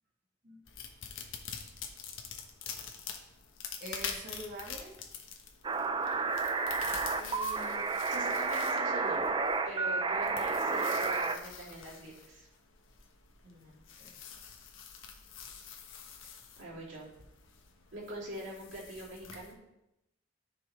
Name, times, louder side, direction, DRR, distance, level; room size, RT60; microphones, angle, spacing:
sound 1, 0.7-19.5, left 6 dB, 90° left, 1.2 m, -46 dB
voice 1, 3.8-5.0 13.4-14.1, right 1 dB, 50° right, -2 dB, 1.5 m, -45 dB
sound 2, 5.6-11.4, right 4 dB, 25° right, 0.5 m, -31 dB
voice 2, 6.0-6.3 7.2-7.8 8.1-9.2 9.7-12.5 16.6-17.1 17.9-19.6, right 1 dB, 70° right, -6 dB, 3.1 m, -44 dB
13.5 x 5.7 x 3.3 m, 0.89 s
head